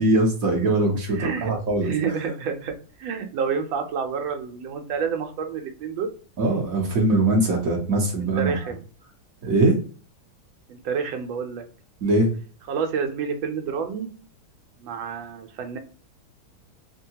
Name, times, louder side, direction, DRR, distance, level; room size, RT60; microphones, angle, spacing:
voice 1, 0.0-1.9 6.4-8.6 9.4-9.8 12.0-12.3, right 2 dB, 60° right, 0 dB, 1.0 m, -21 dB
voice 2, 1.1-1.5 1.8-2.7 3.0-6.1 8.2-8.8 10.7-11.6 12.7-14.1 14.8-15.8, right 6 dB, 75° right, 5 dB, 1.4 m, -29 dB
3.5 x 2.2 x 2.7 m, 0.41 s
omnidirectional pair, 2.2 m